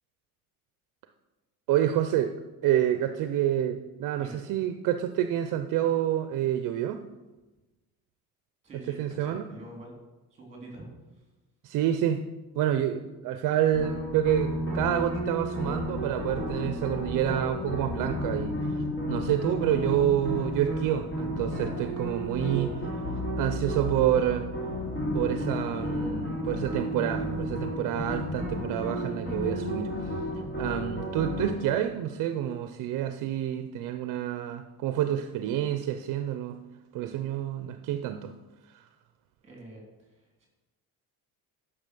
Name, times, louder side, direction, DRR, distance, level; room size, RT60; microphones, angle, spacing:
voice 1, 1.7-2.3 2.6-7.0 9.0-9.5 11.6-12.2 12.6-23.0 23.4-24.5 25.1-30.2 30.6-36.6 36.9-38.3 38.7-38.9, right 11 dB, 60° right, 9 dB, 0.6 m, -28 dB
voice 2, 8.6-9.9 10.3-10.9 11.1-11.2 39.4-40.5, right 1 dB, 20° right, -1 dB, 3.4 m, -46 dB
sound 1, 13.7-31.5, equal, 35° left, 2.8 m, -32 dB
9.8 x 6.1 x 6.8 m, 1.1 s
cardioid pair, 170°, 36 cm